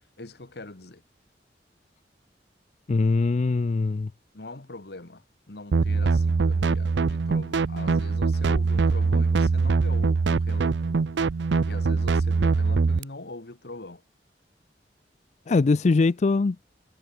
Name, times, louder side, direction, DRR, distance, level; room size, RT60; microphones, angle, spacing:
voice 1, 0.2-1.0 4.3-11.0 11.6-14.0, left 2 dB, 65° left, 1.6 m, -42 dB
voice 2, 2.9-4.1 15.5-16.6, left 3 dB, 40° left, 0.4 m, -22 dB
sound 1, 5.7-13.0, right 4 dB, 80° right, 0.5 m, -23 dB
head